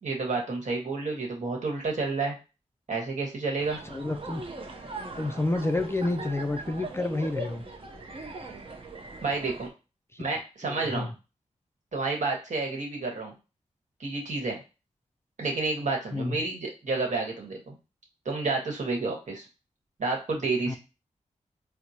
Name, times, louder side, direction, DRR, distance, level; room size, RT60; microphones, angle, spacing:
voice 1, 0.0-2.4 2.9-3.8 9.2-9.7 10.2-11.1 11.9-13.3 14.0-14.6 15.4-17.7 18.2-19.4 20.0-20.8, right 3 dB, 70° right, 0 dB, 1.1 m, -30 dB
sound 1, 3.6-9.7, right 2 dB, 45° right, 0.6 m, -40 dB
voice 2, 3.9-4.4 5.2-7.6 10.1-10.2 10.6-11.1 16.1-16.4 20.7-20.8, left 2 dB, 20° left, 7 dB, 0.3 m, -29 dB
4.5 x 2.0 x 2.7 m, 0.30 s
wide cardioid pair, 70°, 13 cm